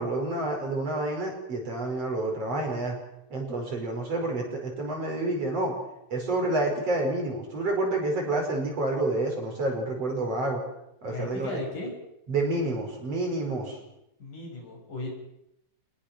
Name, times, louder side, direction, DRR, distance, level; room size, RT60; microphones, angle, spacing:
voice 1, 0.0-3.0 3.3-5.7 6.1-10.6 11.0-11.6 12.3-13.8, right 2 dB, 45° right, 1 dB, 6.0 m, -29 dB
voice 2, 11.1-11.9 14.2-15.1, left 2 dB, 65° left, 0 dB, 7.8 m, -36 dB
26.5 x 20.0 x 6.1 m, 0.83 s
omnidirectional pair, 3.9 m